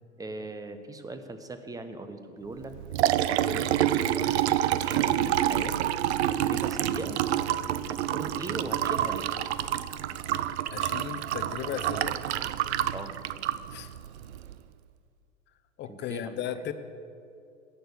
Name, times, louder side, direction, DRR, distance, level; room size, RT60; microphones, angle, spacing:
voice 1, 0.2-2.7 3.3-4.3 4.8-5.9 6.3-7.2 7.9-9.3 12.9-13.1 15.9-16.4, right 2 dB, 10° right, 9 dB, 1.0 m, -39 dB
Liquid, 2.6-14.5, right 12 dB, 60° right, 0.6 m, -28 dB
voice 2, 10.7-12.2 13.7-13.9 15.8-16.7, left 9 dB, 30° left, 10 dB, 0.9 m, -36 dB
17.0 x 6.8 x 8.0 m, 2.5 s
hypercardioid pair, 95°, 37 cm